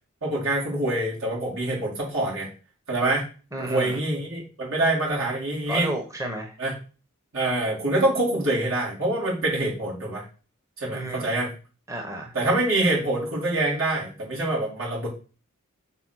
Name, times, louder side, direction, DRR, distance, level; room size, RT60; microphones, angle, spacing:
voice 1, 0.2-2.5 2.9-3.3 3.6-5.9 6.6-6.7 7.3-10.2 10.8-11.5 12.3-15.1, right 2 dB, 70° right, -5 dB, 4.5 m, -25 dB
voice 2, 3.5-4.0 5.7-6.5 10.9-11.2 11.9-12.3, right 1 dB, 15° right, 3 dB, 1.1 m, -32 dB
5.9 x 4.6 x 6.3 m, 0.35 s
head